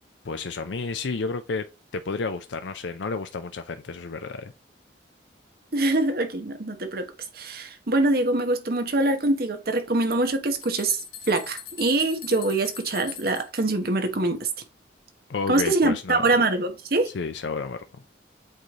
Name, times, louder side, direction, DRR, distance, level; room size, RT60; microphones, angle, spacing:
voice 1, 0.2-1.7 1.9-4.5 15.3-16.3 17.0-18.0, left 4 dB, 75° left, 0.5 m, -31 dB
voice 2, 5.7-14.5 15.5-17.1, right 2 dB, 55° right, 1.2 m, -24 dB
sound 1, 10.1-13.6, left 7 dB, 50° left, 1.7 m, -41 dB
7.9 x 3.2 x 3.8 m
head